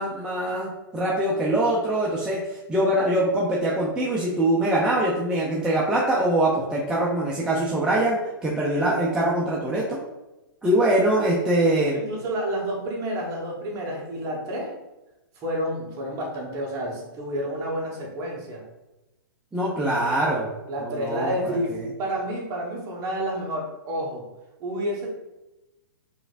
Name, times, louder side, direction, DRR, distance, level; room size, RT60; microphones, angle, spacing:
voice 1, 0.0-10.0 10.6-12.0 19.5-20.5 20.8-21.3, right 1 dB, 5° right, -6 dB, 0.6 m, -23 dB
voice 2, 11.9-14.8 15.3-18.6 20.7-24.3 24.6-25.1, equal, 30° right, -2 dB, 1.3 m, -30 dB
4.8 x 3.2 x 2.5 m, 1.0 s
hypercardioid pair, 130°, 12 cm